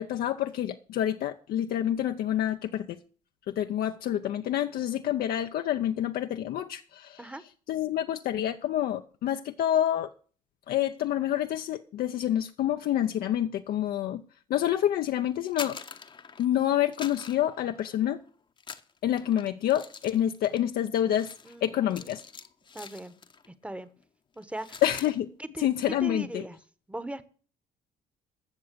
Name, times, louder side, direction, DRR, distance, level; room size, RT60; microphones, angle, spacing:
voice 1, 0.0-3.0 3.5-7.2 7.7-10.1 10.7-14.2 14.5-15.8 16.4-18.2 19.0-21.3 21.6-22.2 24.8-25.3 25.6-26.4, left 11 dB, 65° left, 0.6 m, -28 dB
sound 1, 15.3-16.6 16.9-18.2 18.6-23.5 23.8-24.0 24.3-25.1, left 5 dB, 30° left, 0.8 m, -45 dB
voice 2, 21.4-22.1 22.7-23.2 23.5-23.9 24.4-24.8 25.4-26.6 26.9-27.2, right 1 dB, 5° right, 1.0 m, -39 dB
14.0 x 6.8 x 6.7 m
cardioid pair, 110°, 17 cm